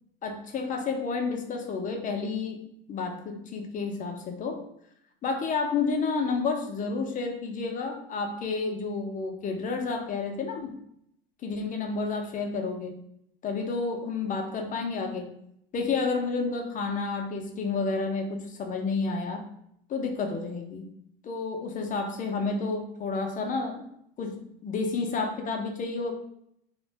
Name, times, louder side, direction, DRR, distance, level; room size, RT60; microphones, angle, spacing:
voice 1, 0.2-2.6 2.9-4.6 5.2-10.7 11.4-13.0 13.4-15.3 15.7-19.4 19.9-20.9 21.2-23.9 24.2-26.1, left 4 dB, 25° left, 3 dB, 0.5 m, -30 dB
2.4 x 2.2 x 3.2 m, 0.74 s
hypercardioid pair, 90°, 30 cm